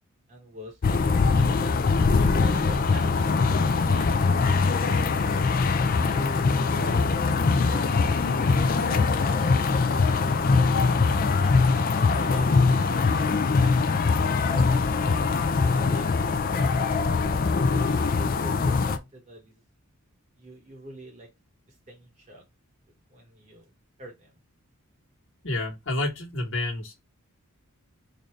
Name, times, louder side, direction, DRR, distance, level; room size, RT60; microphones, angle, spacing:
voice 1, 0.3-0.8 1.4-1.7 2.0-5.1 5.6-7.0 7.7-8.0 8.4-9.3 9.7-10.4 12.0-13.3 13.6-14.0 14.5-16.1 16.9-19.6 20.4-21.3 21.9-22.4 23.1-23.7 24.0-24.4, right 1 dB, 30° right, 1.7 m, -45 dB
sound 1, 0.8-19.0, left 4 dB, 40° left, 0.4 m, -22 dB
voice 2, 25.4-26.9, left 2 dB, 55° left, 1.3 m, -29 dB
3.9 x 2.6 x 3.1 m
head